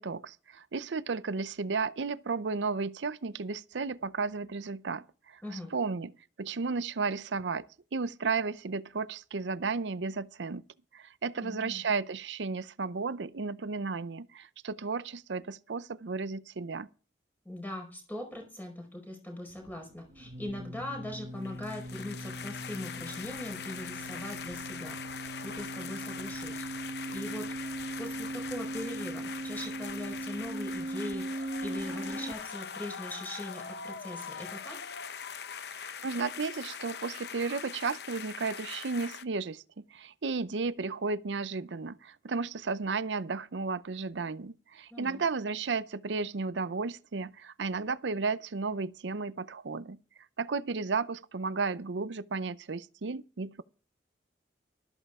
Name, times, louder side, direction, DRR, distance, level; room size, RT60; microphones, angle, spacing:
voice 1, 0.0-6.1 6.4-7.6 7.9-10.6 10.9-16.9 35.8-50.0 50.4-53.6, right 4 dB, 85° right, 0.6 m, -33 dB
voice 2, 11.4-11.8 17.4-25.0 25.4-26.6 27.1-27.5 28.0-34.8 44.9-45.2, left 1 dB, 10° left, 4.8 m, -41 dB
sound 1, 19.5-32.3, right 1 dB, 40° right, 1.1 m, -40 dB
sound 2, 21.4-39.2, left 7 dB, 65° left, 0.8 m, -42 dB
13.5 x 13.0 x 3.6 m
head